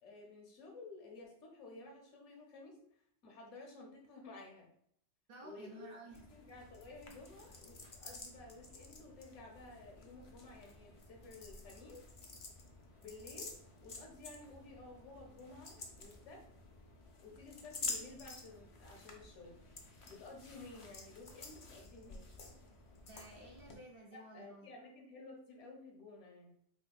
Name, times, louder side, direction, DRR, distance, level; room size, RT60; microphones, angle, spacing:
voice 1, 0.0-2.8 3.2-4.7 5.4-12.0 13.0-13.5 13.8-16.5 17.2-19.5 20.1-22.2 24.1-26.5, left 3 dB, 75° left, 0 dB, 1.2 m, -53 dB
voice 2, 5.3-6.2 23.1-24.7, right 2 dB, 60° right, -1 dB, 0.7 m, -53 dB
sound 1, 6.1-23.8, left 3 dB, 50° left, 0.4 m, -50 dB
3.5 x 3.4 x 2.2 m, 0.67 s
omnidirectional pair, 1.2 m